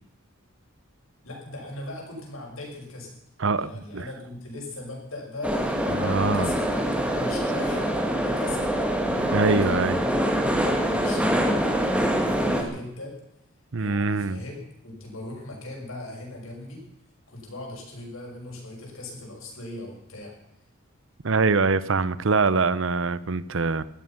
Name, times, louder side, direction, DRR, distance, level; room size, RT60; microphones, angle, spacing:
voice 1, 1.2-3.1 3.5-5.8 6.2-8.7 9.4-13.2 13.8-16.8 17.3-20.3, left 2 dB, 70° left, -1 dB, 6.1 m, -39 dB
voice 2, 3.4-4.1 5.9-6.5 9.2-10.0 13.7-14.4 21.2-23.8, right 4 dB, 60° right, 17 dB, 0.7 m, -24 dB
sound 1, 5.4-12.6, equal, 5° right, 1.9 m, -25 dB
17.5 x 13.0 x 5.7 m, 0.81 s
head